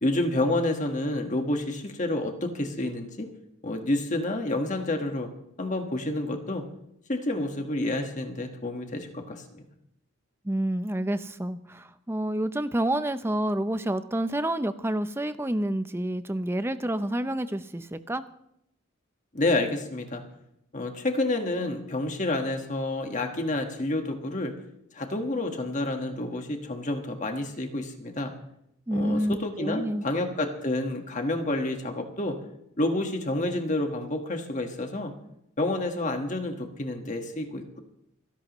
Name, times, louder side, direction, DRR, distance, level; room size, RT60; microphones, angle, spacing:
voice 1, 0.0-3.3 3.6-5.3 5.6-6.7 7.1-9.6 19.3-20.2 20.7-24.5 24.9-28.3 28.9-32.4 32.8-35.1 35.6-37.8, left 2 dB, 35° left, 4 dB, 1.5 m, -29 dB
voice 2, 10.4-18.2 28.9-30.1, right 1 dB, 10° right, 11 dB, 0.5 m, -28 dB
29.0 x 11.0 x 3.1 m, 0.77 s
head